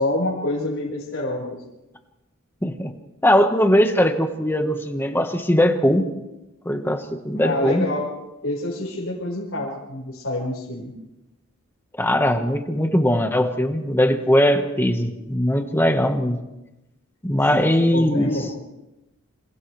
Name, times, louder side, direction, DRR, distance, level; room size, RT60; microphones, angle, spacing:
voice 1, 0.0-1.6 7.4-8.1 8.4-10.9 17.5-18.5, left 1 dB, 65° left, -6 dB, 5.5 m, -27 dB
voice 2, 2.6-2.9 3.2-6.1 6.6-7.8 12.0-16.4 17.2-18.3, equal, 10° left, 5 dB, 1.5 m, -20 dB
28.0 x 27.5 x 3.4 m, 0.96 s
head